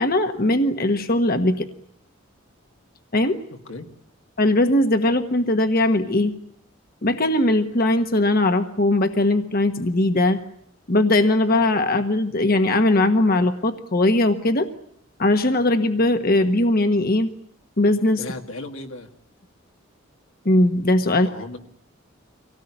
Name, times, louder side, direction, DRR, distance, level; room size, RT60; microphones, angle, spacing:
voice 1, 0.0-1.7 3.1-3.4 4.4-6.3 7.0-10.4 10.9-14.7 15.2-17.3 17.8-18.2 20.4-21.3, left 1 dB, 50° left, 7 dB, 1.4 m, -19 dB
voice 2, 18.2-19.1 21.1-21.6, left 2 dB, 85° left, 4 dB, 2.4 m, -35 dB
25.0 x 18.0 x 10.0 m, 0.70 s
head